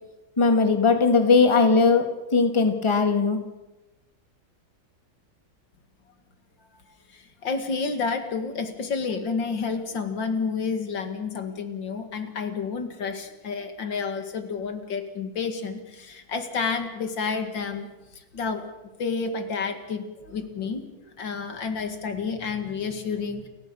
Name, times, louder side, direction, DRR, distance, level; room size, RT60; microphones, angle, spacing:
voice 1, 0.4-3.4, left 4 dB, 15° left, 6 dB, 1.8 m, -19 dB
voice 2, 6.9-18.7 19.0-23.5, left 5 dB, 80° left, 7 dB, 2.8 m, -30 dB
29.5 x 14.0 x 7.0 m, 1.1 s
omnidirectional pair, 2.0 m